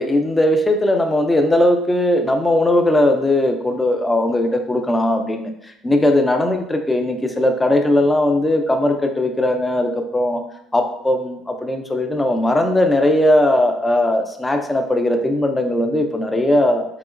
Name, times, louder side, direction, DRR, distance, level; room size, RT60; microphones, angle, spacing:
voice 1, 0.0-10.4 10.7-16.8, left 1 dB, 10° left, 5 dB, 0.4 m, -18 dB
4.8 x 3.7 x 2.5 m, 0.74 s
cardioid pair, 175°, 0 cm